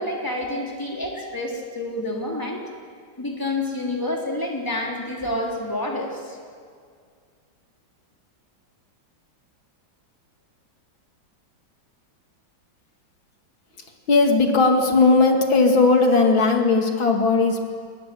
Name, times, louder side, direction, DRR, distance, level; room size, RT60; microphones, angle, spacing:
voice 1, 0.0-2.6 3.2-6.4, left 1 dB, 10° left, -1 dB, 3.4 m, -28 dB
voice 2, 14.1-17.7, left 3 dB, 75° left, 2 dB, 3.0 m, -17 dB
28.5 x 20.5 x 7.7 m, 2.1 s
omnidirectional pair, 2.2 m